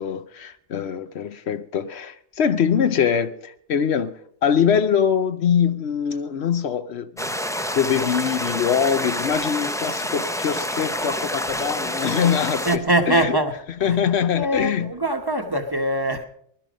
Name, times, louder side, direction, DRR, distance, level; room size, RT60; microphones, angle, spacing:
voice 1, 0.0-7.3 7.7-13.4 13.8-14.9, left 7 dB, 70° left, 1.0 m, -23 dB
sound 1, 7.2-12.8, equal, 5° left, 0.5 m, -27 dB
voice 2, 12.6-13.5 13.8-14.0 14.3-16.2, right 1 dB, 20° right, 1.1 m, -22 dB
20.5 x 11.5 x 5.2 m
omnidirectional pair, 1.1 m